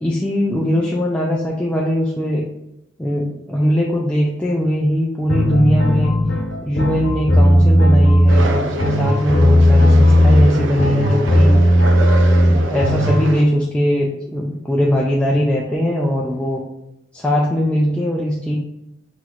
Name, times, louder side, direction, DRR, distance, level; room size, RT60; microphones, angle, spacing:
voice 1, 0.0-2.4 3.0-6.1 6.6-11.6 12.4-16.6 17.1-18.6, equal, 5° left, -4 dB, 0.4 m, -20 dB
sound 1, 5.3-13.2, equal, 75° left, 0.9 m, -14 dB
sound 2, 8.3-13.4, right 2 dB, 80° right, 0.5 m, -27 dB
5.8 x 2.9 x 2.5 m, 0.86 s
head